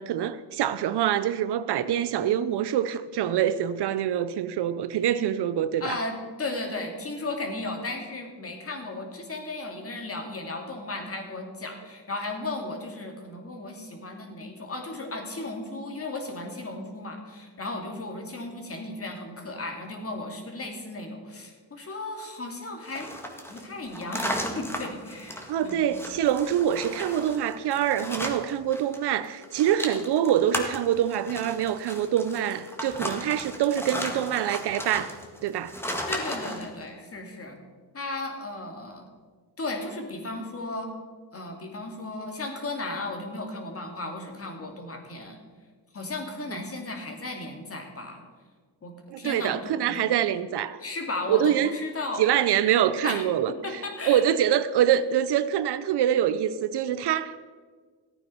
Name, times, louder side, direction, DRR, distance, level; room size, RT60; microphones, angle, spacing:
voice 1, 0.0-6.0 25.5-35.1 35.4-35.8 49.1-50.8 51.3-51.7 52.2-57.4, right 10 dB, 65° right, 0.7 m, -25 dB
voice 2, 5.8-23.1 23.5-25.9 36.1-37.6 37.9-39.0 39.6-40.9 41.3-45.4 45.9-48.2 48.8-50.1 50.8-52.2 53.0-53.3 53.6-54.2, left 2 dB, 30° left, 2.6 m, -35 dB
sound 1, 22.8-29.0 29.2-36.7, equal, 5° left, 1.8 m, -35 dB
14.5 x 9.0 x 5.7 m
cardioid pair, 95°, 44 cm